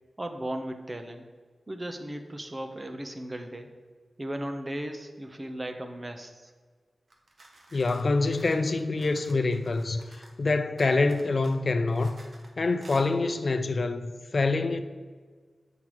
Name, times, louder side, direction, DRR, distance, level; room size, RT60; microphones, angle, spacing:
voice 1, 0.2-1.2 1.7-3.7 4.2-6.5, right 1 dB, 30° right, 1.0 m, -36 dB
sound 1, 7.1-10.4 10.8-12.5 12.8-13.1, right 2 dB, 60° right, 1.3 m, -53 dB
voice 2, 7.7-12.2 12.6-14.8, left 3 dB, 60° left, 0.5 m, -26 dB
7.5 x 5.9 x 4.7 m
cardioid pair, 50°, 0 cm